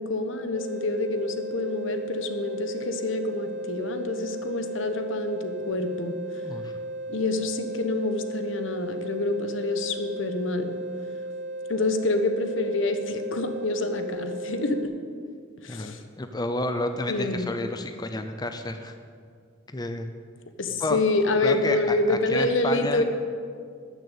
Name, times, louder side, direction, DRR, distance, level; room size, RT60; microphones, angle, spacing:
voice 1, 0.0-6.1 7.1-10.7 11.7-14.9 15.6-16.0 17.1-17.5 20.6-23.0, left 2 dB, 70° left, 8 dB, 1.1 m, -27 dB
sound 1, 0.5-14.8, right 1 dB, 65° right, 0.8 m, -35 dB
voice 2, 6.4-6.7 15.7-18.9 19.7-20.1 20.8-21.0 21.4-23.0, left 2 dB, 20° left, 7 dB, 0.6 m, -30 dB
13.0 x 6.7 x 8.5 m, 2.2 s
head